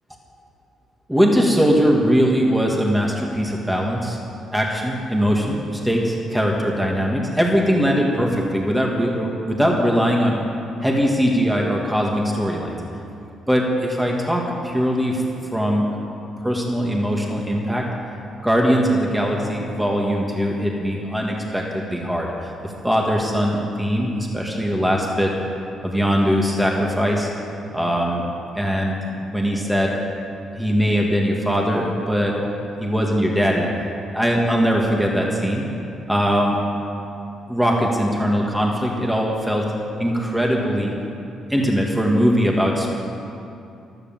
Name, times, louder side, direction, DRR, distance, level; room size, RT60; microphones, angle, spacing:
voice 1, 1.1-4.2 4.5-10.4 10.8-12.8 13.5-15.2 15.5-16.0 16.4-17.9 18.4-25.3 25.8-27.3 27.7-28.2 28.5-29.0 29.3-29.9 30.5-32.5 32.8-33.7 34.1-35.7 36.1-36.6 37.5-39.6 40.0-40.9 41.5-42.9, equal, 5° right, -1 dB, 2.2 m, -21 dB
13.0 x 12.5 x 7.5 m, 2.6 s
cardioid pair, 90°, 0 cm